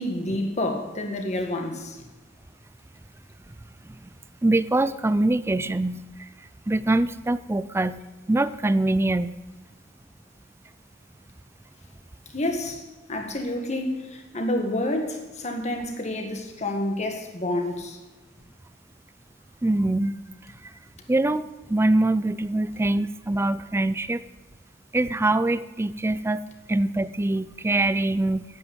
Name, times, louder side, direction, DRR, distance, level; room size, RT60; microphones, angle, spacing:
voice 1, 0.0-2.0 12.3-12.8 13.1-18.0, left 1 dB, 35° left, 3 dB, 1.8 m, -28 dB
voice 2, 4.4-6.0 6.7-8.0 8.3-9.3 19.6-20.2 21.1-24.2 24.9-26.4 26.7-28.4, right 2 dB, 15° right, 15 dB, 0.4 m, -23 dB
9.6 x 8.9 x 7.9 m, 1.2 s
head